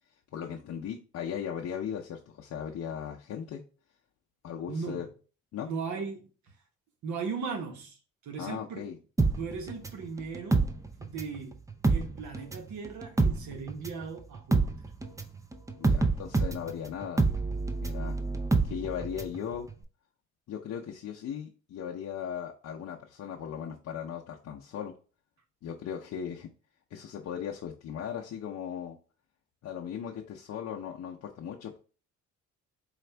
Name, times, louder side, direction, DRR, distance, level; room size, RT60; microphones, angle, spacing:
voice 1, 0.3-3.6 4.4-5.1 5.5-5.7 8.4-9.0 15.8-17.3 17.8-18.2 18.6-19.7 20.5-24.9 25.6-26.5 26.9-29.0 29.6-31.8, left 8 dB, 60° left, 0.6 m, -37 dB
voice 2, 4.7-5.1 5.6-6.2 7.0-8.0 8.2-8.8 9.4-10.7 11.0-14.7, right 5 dB, 70° right, 1.1 m, -37 dB
sound 1, 9.2-11.4 11.7-19.4 19.7-19.8, right 3 dB, 10° right, 0.4 m, -27 dB
4.2 x 2.4 x 3.3 m
cardioid pair, 90°, 30 cm